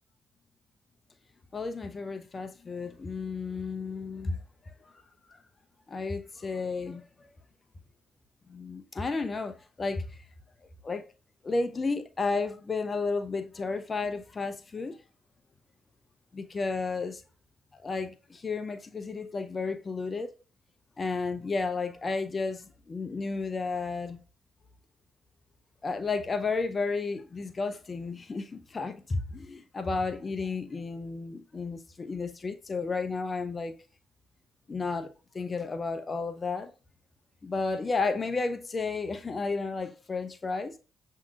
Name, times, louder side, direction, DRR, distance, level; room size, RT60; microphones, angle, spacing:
voice 1, 1.5-4.9 5.9-7.3 8.5-10.2 10.8-11.1 11.4-15.0 16.3-17.2 17.7-20.3 21.0-24.2 25.8-33.7 34.7-36.7 37.4-40.8, left 4 dB, 40° left, 0.5 m, -32 dB
7.2 x 2.7 x 2.3 m
supercardioid pair, 50°, 0 cm